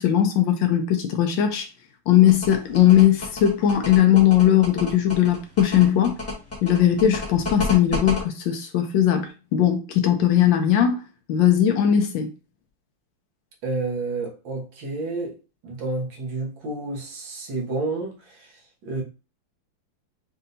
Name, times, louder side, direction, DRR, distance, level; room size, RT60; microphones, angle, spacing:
voice 1, 0.0-1.7 2.1-6.2 6.6-11.0 11.3-12.3, left 10 dB, 75° left, 1.2 m, -19 dB
sound 1, 2.3-8.2, left 3 dB, 5° left, 1.5 m, -30 dB
voice 2, 13.6-15.4 15.6-19.0, right 3 dB, 65° right, 1.9 m, -30 dB
5.4 x 2.7 x 2.6 m
omnidirectional pair, 2.3 m